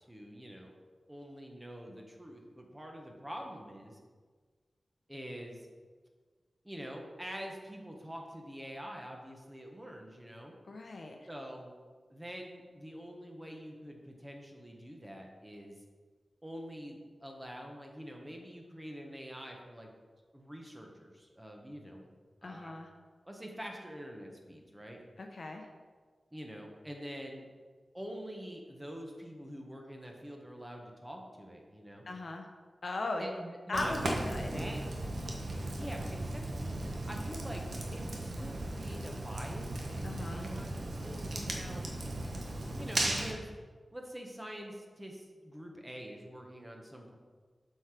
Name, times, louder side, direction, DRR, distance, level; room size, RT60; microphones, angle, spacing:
voice 1, 0.1-0.7 1.1-4.0 5.1-5.7 6.6-10.5 11.3-11.7 12.1-15.7 16.4-19.9 20.3-22.1 22.4-22.7 23.2-25.0 26.3-27.5 27.9-32.0 33.2-35.0 35.7-36.4 37.1-37.6 37.9-41.9 42.7-43.5 43.9-47.2, equal, 15° right, 1 dB, 1.2 m, -45 dB
voice 2, 10.7-11.1 22.4-22.9 25.2-25.6 32.1-32.5 32.8-33.2 33.7-34.6 40.0-40.4, left 2 dB, 60° left, 3 dB, 0.9 m, -38 dB
Fire, 33.7-43.3, right 2 dB, 75° right, 1.2 m, -37 dB
7.6 x 4.7 x 5.0 m, 1.5 s
wide cardioid pair, 70°, 0 cm